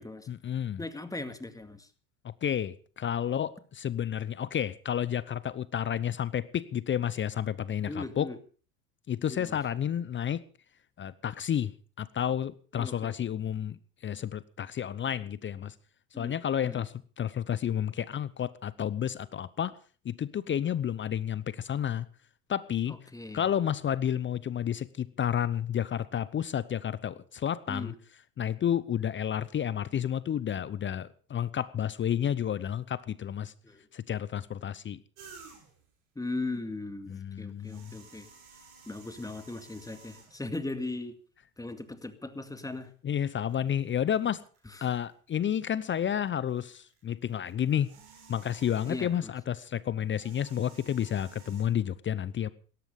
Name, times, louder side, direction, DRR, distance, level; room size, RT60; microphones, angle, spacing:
voice 1, 0.3-0.8 2.2-8.3 9.1-10.4 11.0-13.8 14.0-15.7 16.2-19.8 20.0-22.1 22.5-23.0 23.3-27.9 28.4-33.5 33.9-35.0 37.1-37.9 43.0-44.4 44.8-47.9 48.3-52.5, left 9 dB, 25° left, 18 dB, 0.8 m, -31 dB
voice 2, 0.8-1.9 7.9-8.4 9.3-9.6 12.8-13.1 16.1-16.3 16.7-16.9 22.9-23.5 27.7-27.9 33.6-33.9 36.2-38.3 38.9-41.2 41.6-42.9 44.7-44.9 48.9-49.3, left 2 dB, 10° left, 9 dB, 2.2 m, -38 dB
sound 1, 35.2-35.9 37.5-40.6 41.4-41.5 42.7-42.9 43.3-45.7 45.9-49.3 50.0-51.6, right 5 dB, 70° right, 6.9 m, -54 dB
17.5 x 13.5 x 5.3 m, 0.40 s
hypercardioid pair, 85°, 44 cm